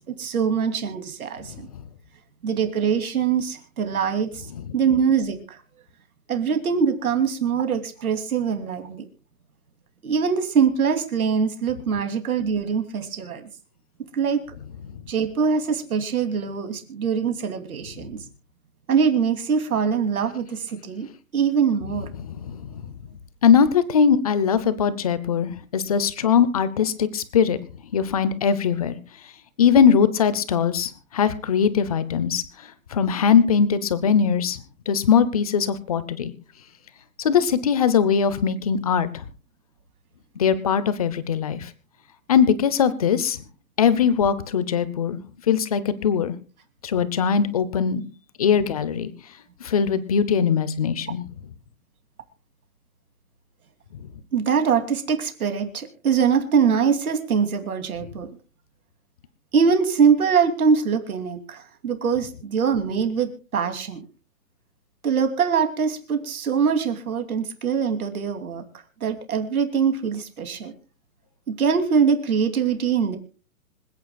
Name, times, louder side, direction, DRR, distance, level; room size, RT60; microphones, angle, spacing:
voice 1, 0.1-1.7 2.4-4.5 4.7-5.6 6.3-9.0 10.0-13.5 14.1-14.4 15.1-18.2 18.9-21.1 21.3-22.1 54.3-58.3 59.5-64.0 65.0-68.7 69.0-70.7 71.5-73.2, right 6 dB, 70° right, 7 dB, 2.9 m, -23 dB
voice 2, 22.3-22.9 23.4-27.6 27.9-29.0 29.6-32.4 32.9-34.6 34.9-36.3 37.2-39.3 40.4-41.7 42.3-43.4 43.8-45.2 45.5-46.3 46.8-48.0 48.4-49.1 49.6-51.2, left 7 dB, 25° left, 15 dB, 0.7 m, -21 dB
26.0 x 9.3 x 2.3 m, 0.36 s
hypercardioid pair, 165°, 44 cm